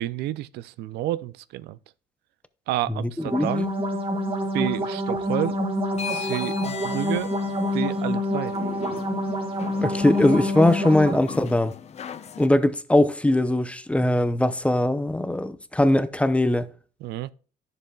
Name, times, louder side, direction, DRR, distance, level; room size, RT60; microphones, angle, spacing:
voice 1, 0.0-1.8 2.7-3.6 4.5-5.6 6.1-7.3 7.7-8.5 17.0-17.3, right 14 dB, 80° right, 0.4 m, -30 dB
voice 2, 2.9-3.5 9.8-11.7 12.4-16.7, left 1 dB, 5° left, 0.6 m, -21 dB
sound 1, 3.2-11.2, left 1 dB, 30° right, 2.1 m, -27 dB
sound 2, 5.9-12.5, left 9 dB, 40° left, 0.7 m, -38 dB
10.5 x 6.8 x 2.3 m
cardioid pair, 110°, 17 cm